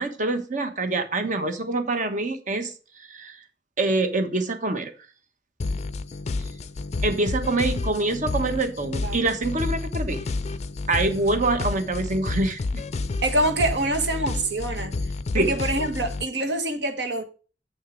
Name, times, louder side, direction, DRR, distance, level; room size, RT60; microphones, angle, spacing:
voice 1, 0.0-3.4 3.8-4.9 7.0-10.3 10.9-12.8 15.3-15.5, right 2 dB, 45° right, 1.3 m, -25 dB
sound 1, 5.6-16.3, left 3 dB, 40° left, 0.4 m, -30 dB
voice 2, 13.2-14.9 15.3-17.2, right 1 dB, 75° right, 1.5 m, -25 dB
7.3 x 6.4 x 5.2 m
head